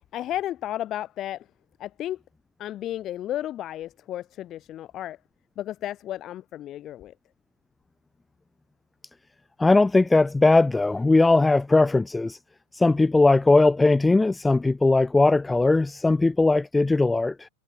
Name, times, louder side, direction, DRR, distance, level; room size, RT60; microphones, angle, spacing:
voice 1, 0.1-1.5 1.8-2.2 2.6-5.2 5.6-7.1, left 12 dB, 30° left, 1.6 m, -33 dB
voice 2, 9.6-12.4 12.7-17.5, left 2 dB, 10° left, 0.8 m, -19 dB
figure-of-eight pair, 90°, 0 cm